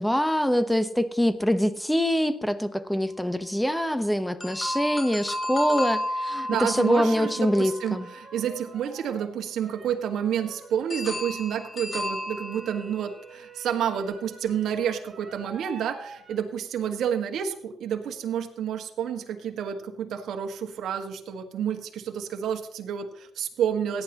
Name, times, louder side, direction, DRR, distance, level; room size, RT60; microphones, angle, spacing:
voice 1, 0.0-8.1, equal, 5° left, 12 dB, 1.0 m, -24 dB
sound 1, 4.4-8.5 10.9-13.2, left 1 dB, 30° left, 3.0 m, -33 dB
sound 2, 6.2-11.2 12.3-16.4, right 5 dB, 40° right, 3.0 m, -48 dB
voice 2, 6.5-24.0, right 8 dB, 75° right, 5 dB, 1.7 m, -29 dB
17.0 x 10.5 x 3.0 m, 0.69 s
cardioid pair, 90°, 0 cm